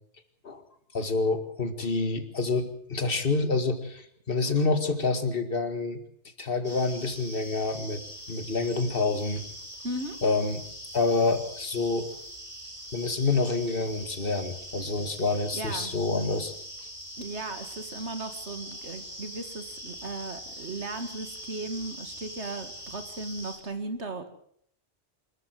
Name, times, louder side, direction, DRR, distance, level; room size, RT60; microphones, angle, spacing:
voice 1, 0.9-6.0 6.4-8.0 8.3-9.4 10.2-10.6 10.9-12.1 12.9-16.5, left 3 dB, 55° left, 8 dB, 2.1 m, -27 dB
sound 1, 6.6-23.6, equal, 30° left, 5.5 m, -42 dB
voice 2, 9.8-10.2 15.5-15.9 17.2-24.3, right 2 dB, 90° right, 8 dB, 2.4 m, -36 dB
25.0 x 14.0 x 7.7 m, 0.67 s
omnidirectional pair, 1.1 m